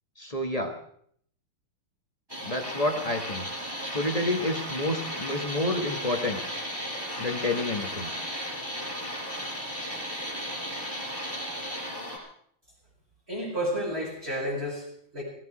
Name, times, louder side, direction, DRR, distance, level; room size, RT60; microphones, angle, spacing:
voice 1, 0.2-0.7 2.4-3.4 3.9-6.4 7.2-8.1, left 1 dB, 20° left, 3 dB, 1.1 m, -29 dB
sound 1, 2.3-12.2, equal, 10° right, 4.6 m, -35 dB
voice 2, 13.3-15.2, equal, 30° right, -6 dB, 6.2 m, -31 dB
17.0 x 16.5 x 4.9 m, 0.64 s
omnidirectional pair, 2.3 m